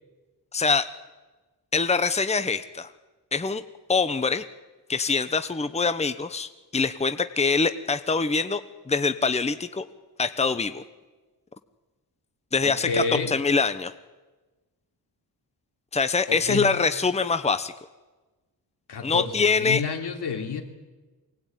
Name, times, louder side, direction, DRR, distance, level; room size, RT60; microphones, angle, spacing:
voice 1, 0.5-0.9 1.7-2.9 3.3-3.6 3.9-4.4 4.9-9.8 10.2-10.8 12.5-13.9 15.9-17.7 19.0-19.8, left 4 dB, 15° left, 11 dB, 1.0 m, -24 dB
voice 2, 12.6-13.3 16.3-16.7 18.9-20.6, left 4 dB, 85° left, 3 dB, 3.5 m, -29 dB
24.5 x 19.5 x 9.4 m, 1.2 s
wide cardioid pair, 120°, 39 cm